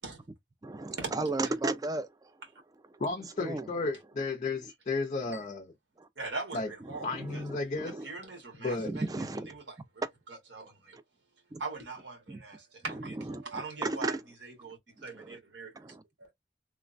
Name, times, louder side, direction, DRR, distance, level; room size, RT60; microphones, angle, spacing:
voice 1, 0.6-2.3 2.9-3.0 3.4-3.7 6.0-6.1 6.9-8.0 8.8-9.5 11.5-11.6 12.3-12.4 12.9-14.2 15.1-15.4 15.7-16.0, right 2 dB, 20° right, 0.4 m, -35 dB
voice 2, 3.0-5.7 6.5-6.7 7.0-8.0 8.6-8.9, left 3 dB, 40° left, 0.5 m, -33 dB
voice 3, 6.2-7.4 7.8-9.6 10.3-11.0 11.6-14.1 14.4-15.7 16.2-16.3, right 3 dB, 75° right, 1.4 m, -41 dB
3.2 x 2.1 x 2.4 m
head